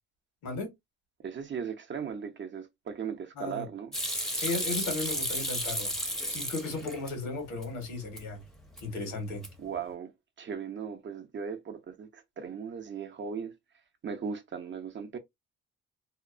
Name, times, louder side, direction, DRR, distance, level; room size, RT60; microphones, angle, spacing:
voice 1, 0.4-0.7 3.4-3.7 4.4-5.9 6.3-8.4 8.8-9.5, left 3 dB, 90° left, 1.4 m, -35 dB
voice 2, 1.2-4.0 9.6-10.1 10.4-13.6 14.0-15.2, right 6 dB, 40° right, 0.6 m, -37 dB
Hands / Sink (filling or washing), 3.9-7.1 7.5-8.2 8.6-9.0 9.3-9.8, equal, ahead, 0.6 m, -33 dB
2.8 x 2.0 x 2.5 m
cardioid pair, 90°, 30 cm